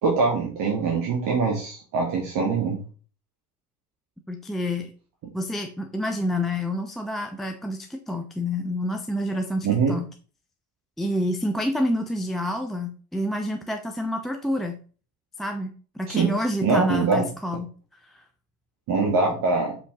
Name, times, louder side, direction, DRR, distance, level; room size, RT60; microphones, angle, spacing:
voice 1, 0.0-2.8 9.6-10.0 16.1-16.3 16.6-17.3 18.9-19.8, right 4 dB, 40° right, -1 dB, 2.1 m, -23 dB
voice 2, 4.3-4.9 5.3-10.1 11.0-14.8 15.4-17.7 18.0-18.2 19.3-19.4, left 1 dB, ahead, 3 dB, 0.6 m, -28 dB
6.8 x 5.5 x 3.7 m, 0.39 s
figure-of-eight pair, 75°, 50 cm